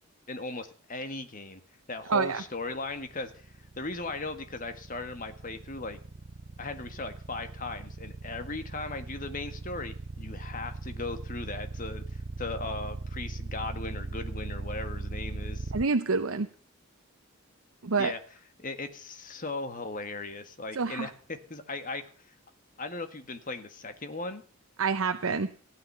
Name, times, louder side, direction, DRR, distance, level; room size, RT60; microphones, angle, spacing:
voice 1, 0.3-1.6 1.9-6.0 6.6-15.7 18.0-18.2 18.6-22.1 22.8-24.4, left 3 dB, 40° left, 8 dB, 1.7 m, -38 dB
voice 2, 2.1-2.4 15.7-16.5 17.8-18.1 20.8-21.1 24.8-25.5, right 4 dB, 75° right, 8 dB, 0.8 m, -27 dB
sound 1, 2.5-15.8, right 3 dB, 40° right, 0.6 m, -39 dB
16.5 x 9.4 x 6.9 m, 0.41 s
head